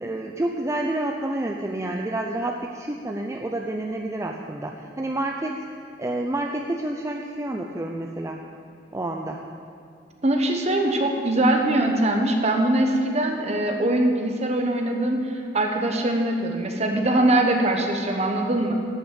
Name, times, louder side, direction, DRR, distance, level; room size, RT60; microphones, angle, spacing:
voice 1, 0.0-5.7 6.0-8.4 8.9-9.4, right 1 dB, 15° right, 1 dB, 0.5 m, -29 dB
voice 2, 10.2-18.7, right 1 dB, 40° right, 3 dB, 1.2 m, -22 dB
11.5 x 6.1 x 8.3 m, 2.5 s
head